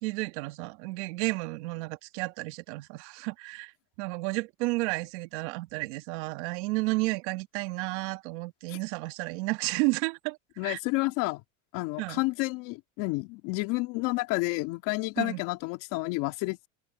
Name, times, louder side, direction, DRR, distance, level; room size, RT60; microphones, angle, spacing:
voice 1, 0.0-3.7 4.0-10.4 10.6-10.8 12.0-12.2 15.2-15.4, right 23 dB, 75° right, 2.1 m, -32 dB
voice 2, 10.6-11.4 11.7-16.7, left 23 dB, 65° left, 2.9 m, -30 dB
open air
supercardioid pair, 115°, 35 cm